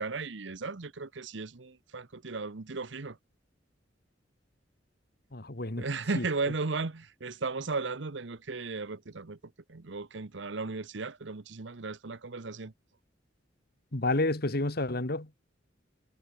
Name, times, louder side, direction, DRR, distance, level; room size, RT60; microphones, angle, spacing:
voice 1, 0.0-3.2 5.8-9.4 9.7-12.7, right 3 dB, 70° right, 1.0 m, -35 dB
voice 2, 5.3-5.9 6.1-6.3 13.9-15.3, left 2 dB, 55° left, 1.9 m, -30 dB
head